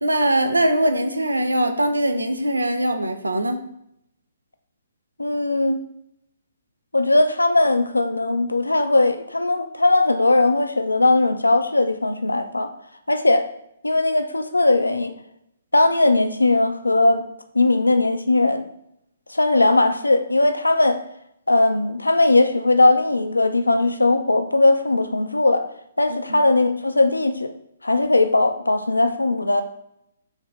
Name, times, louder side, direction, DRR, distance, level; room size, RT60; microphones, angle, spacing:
voice 1, 0.0-3.7 26.1-26.4, right 1 dB, 85° right, 8 dB, 0.5 m, -22 dB
voice 2, 5.2-5.8 6.9-12.7 13.1-13.5 13.8-15.1 15.7-17.2 17.5-18.7 19.3-21.0 21.5-25.7 26.0-27.5 27.8-29.6, left 2 dB, 85° left, 7 dB, 0.4 m, -19 dB
4.5 x 2.8 x 3.5 m, 0.76 s
figure-of-eight pair, 130°, 0 cm